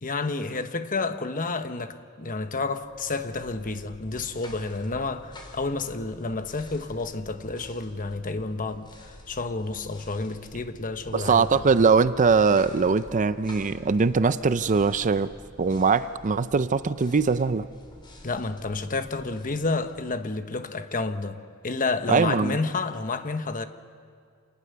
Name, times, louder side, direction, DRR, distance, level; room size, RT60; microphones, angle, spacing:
voice 1, 0.0-11.6 18.2-23.7, left 3 dB, 40° left, 1.1 m, -30 dB
sound 1, 2.7-20.6, left 1 dB, 20° left, 3.3 m, -48 dB
voice 2, 11.1-15.3 15.6-17.6 22.1-22.6, right 5 dB, 35° right, 0.5 m, -21 dB
28.0 x 19.0 x 6.8 m
head